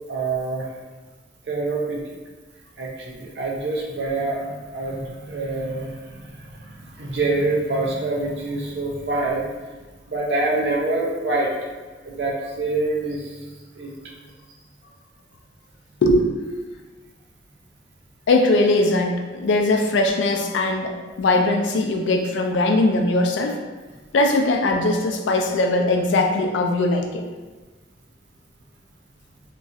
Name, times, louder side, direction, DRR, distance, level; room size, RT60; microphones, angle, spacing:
voice 1, 0.1-0.7 1.5-2.1 2.8-9.5 10.1-11.5 12.0-13.5 13.8-13.9, right 2 dB, 65° right, -2 dB, 0.6 m, -26 dB
voice 2, 18.3-23.6 24.1-27.2, left 2 dB, 85° left, 3 dB, 0.4 m, -20 dB
2.9 x 2.3 x 2.6 m, 1.3 s
head